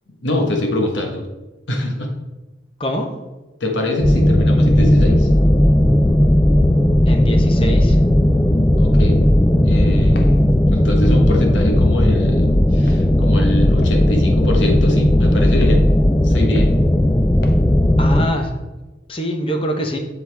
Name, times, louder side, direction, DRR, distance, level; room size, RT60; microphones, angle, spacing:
voice 1, 0.2-1.3 1.7-2.1 3.6-5.3 8.8-10.3 10.7-15.9 16.2-16.8, left 1 dB, 85° left, 2 dB, 1.5 m, -23 dB
sound 1, 4.0-18.3, left 1 dB, 15° left, 0.3 m, -15 dB
voice 2, 7.1-8.0 18.0-18.5 19.1-20.0, equal, 30° left, 4 dB, 1.0 m, -23 dB
Walk footsteps, 10.2-10.4 11.0-11.2 11.9-12.1 12.9-13.0 13.8-14.0 14.7-14.9 15.6-15.8 16.6-16.8 17.4-17.6, left 1 dB, 55° left, 0.9 m, -37 dB
7.7 x 7.5 x 3.5 m, 1.1 s
head